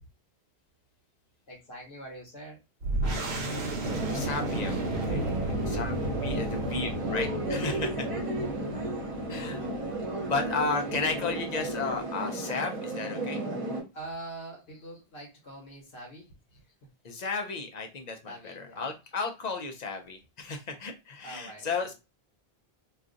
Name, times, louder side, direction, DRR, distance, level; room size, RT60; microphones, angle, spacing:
voice 1, 1.5-2.6 3.0-3.4 5.6-5.7 6.4-6.6 8.4-8.9 13.9-16.3 18.2-18.9 21.2-21.9, right 1 dB, 75° left, 0 dB, 1.1 m, -44 dB
sound 1, 2.8-12.0, right 1 dB, 85° right, 1.0 m, -34 dB
sound 2, 3.8-13.8, right 1 dB, 35° right, 0.9 m, -34 dB
voice 2, 4.1-4.8 5.1-8.1 9.3-9.6 10.3-13.4 17.0-21.9, left 4 dB, 55° left, 5 dB, 0.5 m, -34 dB
2.4 x 2.4 x 3.7 m, 0.27 s
omnidirectional pair, 1.0 m